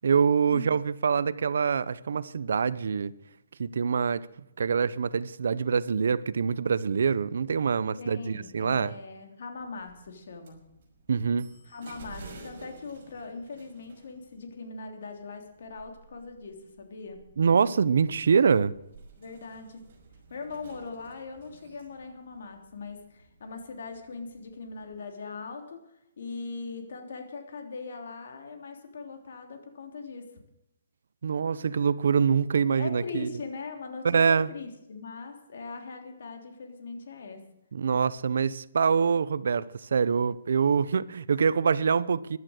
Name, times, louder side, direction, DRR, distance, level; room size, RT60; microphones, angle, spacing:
voice 1, 0.0-3.1 3.6-4.3 4.6-8.9 11.1-11.5 17.4-18.7 31.2-33.3 34.0-34.5 37.7-42.4, right 6 dB, 70° right, 0.8 m, -25 dB
voice 2, 8.0-10.6 11.7-17.2 19.2-19.9 20.3-25.8 26.2-30.3 32.8-37.5 41.7-41.9, left 4 dB, 60° left, 3.4 m, -40 dB
sound 1, 9.5-24.9, right 3 dB, 40° right, 5.9 m, -53 dB
15.5 x 11.5 x 6.6 m
hypercardioid pair, 175°, 0 cm